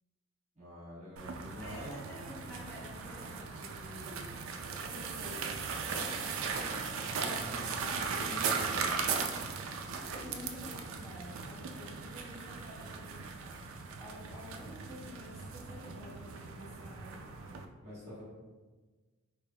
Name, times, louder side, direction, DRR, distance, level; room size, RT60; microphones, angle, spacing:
voice 1, 0.5-2.0 7.2-8.5 17.8-18.2, equal, 30° right, -9 dB, 1.2 m, -47 dB
sound 1, 1.2-17.7, right 5 dB, 65° right, 0.3 m, -38 dB
voice 2, 1.6-4.3 4.8-6.6 7.0-9.6 9.9-13.3 14.0-17.2, left 1 dB, 10° left, -6 dB, 0.8 m, -50 dB
3.9 x 3.3 x 2.2 m, 1.3 s
head